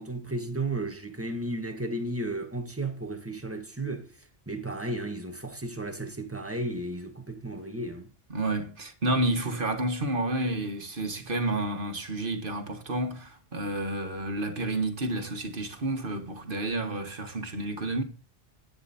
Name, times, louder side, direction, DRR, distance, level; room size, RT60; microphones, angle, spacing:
voice 1, 0.0-4.1 4.5-8.1, right 2 dB, 15° right, 1.6 m, -34 dB
voice 2, 8.3-18.0, right 2 dB, 60° right, 2.0 m, -30 dB
11.5 x 9.7 x 4.3 m
omnidirectional pair, 1.0 m